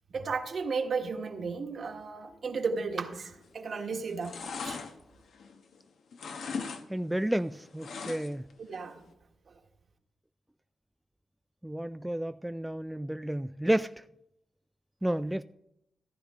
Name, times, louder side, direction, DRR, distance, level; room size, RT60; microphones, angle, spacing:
voice 1, 0.1-4.8 8.7-9.0, right 4 dB, 60° right, 1.5 m, -34 dB
sound 1, 3.4-3.7 4.0-5.8 6.1-6.8 7.1-8.5 8.9-9.0, left 5 dB, 75° left, 1.1 m, -39 dB
voice 2, 6.9-8.5 11.6-13.9 15.0-15.4, right 1 dB, 10° right, 0.3 m, -31 dB
14.5 x 9.8 x 3.7 m
cardioid pair, 65°, 0 cm